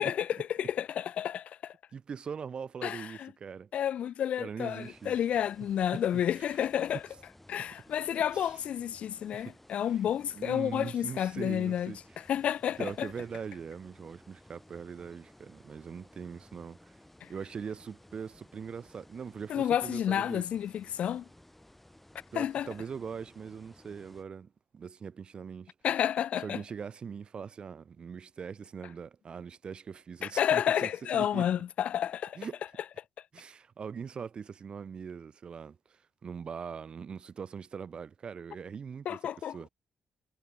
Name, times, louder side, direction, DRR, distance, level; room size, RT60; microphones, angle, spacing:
voice 1, 0.0-1.7 2.8-3.3 3.7-7.0 7.5-11.9 12.3-13.1 17.2-17.3 19.5-21.3 22.3-22.7 25.8-26.6 30.2-32.4 39.1-39.6, left 10 dB, 70° left, 0.5 m, -30 dB
voice 2, 1.9-3.7 4.4-5.1 5.9-6.5 8.3-8.6 9.3-9.6 10.3-12.0 12.8-17.0 17.3-20.5 22.3-25.7 26.4-31.5 32.4-32.6 33.3-39.7, right 6 dB, 45° right, 1.2 m, -41 dB
sound 1, 4.8-24.2, left 1 dB, 5° left, 1.9 m, -57 dB
cardioid pair, 115°, 2 cm